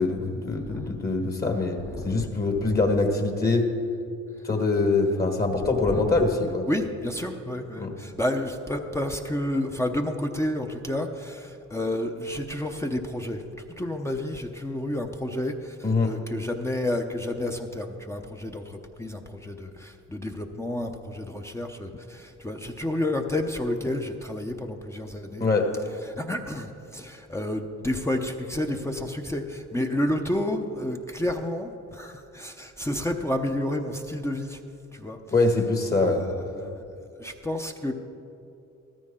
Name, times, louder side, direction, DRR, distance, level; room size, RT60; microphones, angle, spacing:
voice 1, 0.0-3.7 4.4-6.7 7.8-8.0 15.8-16.1 25.4-25.7 35.3-36.2, left 3 dB, 30° left, 4 dB, 1.6 m, -24 dB
voice 2, 0.7-1.0 1.9-2.3 5.8-6.2 6.7-13.4 13.8-25.5 26.0-34.6 34.9-35.2 35.9-36.8 37.2-37.9, left 1 dB, 10° left, 3 dB, 0.8 m, -30 dB
14.0 x 13.0 x 3.8 m, 2.6 s
cardioid pair, 90°, 30 cm